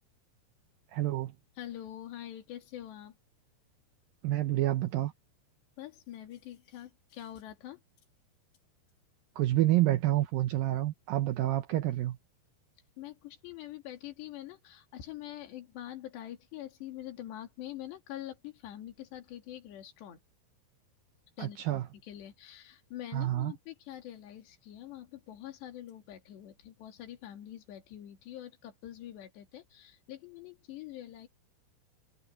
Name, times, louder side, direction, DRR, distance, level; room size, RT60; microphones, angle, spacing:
voice 1, 0.9-1.3 4.2-5.1 9.4-12.2 21.4-21.8 23.1-23.5, right 15 dB, 85° right, 2.1 m, -28 dB
voice 2, 1.6-3.2 5.8-7.8 13.0-20.2 21.4-31.3, left 12 dB, 75° left, 4.7 m, -45 dB
omnidirectional pair, 5.0 m